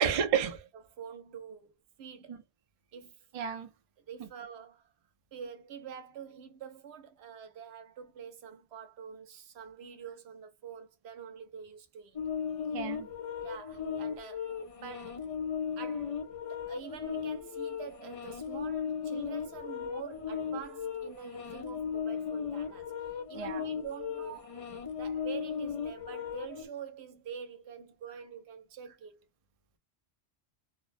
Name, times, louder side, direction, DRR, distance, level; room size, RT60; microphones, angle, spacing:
voice 1, 0.0-0.7 2.3-2.4 3.3-3.7 12.7-13.1 23.3-23.6, right 8 dB, 55° right, 0.4 m, -30 dB
voice 2, 0.9-2.4 2.9-3.3 4.1-4.9 5.3-12.2 13.4-15.3 15.8-16.2 16.5-24.6 25.0-29.2, right 7 dB, 70° right, 0.9 m, -46 dB
sound 1, 12.2-26.7, left 7 dB, 50° left, 0.4 m, -37 dB
2.6 x 2.0 x 2.4 m
omnidirectional pair, 1.2 m